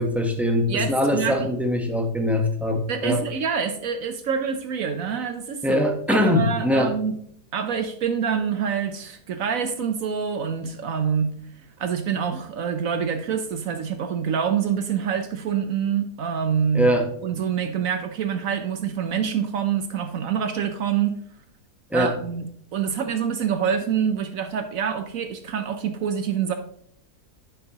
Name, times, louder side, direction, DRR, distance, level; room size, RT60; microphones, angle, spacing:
voice 1, 0.0-3.2 5.6-6.9 16.7-17.1 21.9-22.2, left 1 dB, ahead, 3 dB, 0.7 m, -22 dB
voice 2, 0.7-1.5 2.9-7.1 7.5-11.3 11.8-16.9 17.2-21.2 21.9-26.5, right 7 dB, 65° right, 8 dB, 1.0 m, -26 dB
9.8 x 7.4 x 2.9 m, 0.65 s
omnidirectional pair, 1.6 m